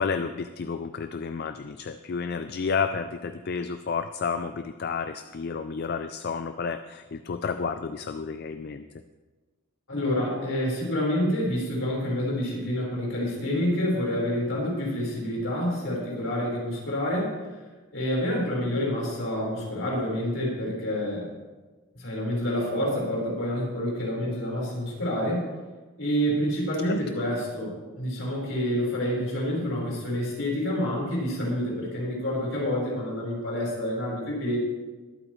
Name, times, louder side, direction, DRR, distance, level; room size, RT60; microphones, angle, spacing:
voice 1, 0.0-8.8 26.9-27.0, left 5 dB, 45° left, 9 dB, 0.4 m, -31 dB
voice 2, 9.9-17.3 17.9-21.3 21.9-25.5 26.0-34.6, equal, 65° left, -4 dB, 4.5 m, -28 dB
21.0 x 8.8 x 3.2 m, 1.3 s
head